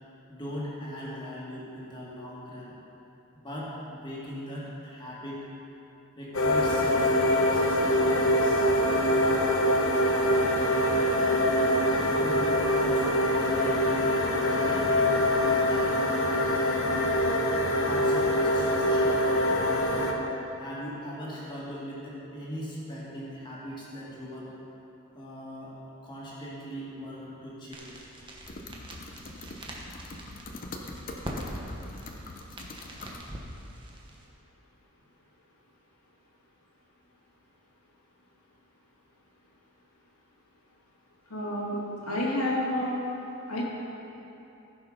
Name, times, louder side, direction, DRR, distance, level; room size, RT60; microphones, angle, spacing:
voice 1, 0.3-2.7 3.4-5.5 6.2-8.6 12.2-13.1 13.4-16.0 16.6-17.4 17.8-20.2 20.6-24.5 25.1-28.0, equal, 20° left, -6 dB, 2.2 m, -40 dB
sound 1, 6.3-20.1, left 1 dB, 60° left, 1.0 m, -24 dB
sound 2, 27.7-34.3, right 1 dB, 20° right, 1.1 m, -43 dB
sound 3, 28.4-33.2, left 2 dB, 40° left, 0.8 m, -43 dB
voice 2, 41.3-41.8 42.1-43.0 43.5-43.6, left 1 dB, 85° left, -5 dB, 2.6 m, -29 dB
15.0 x 6.5 x 5.2 m, 2.9 s
head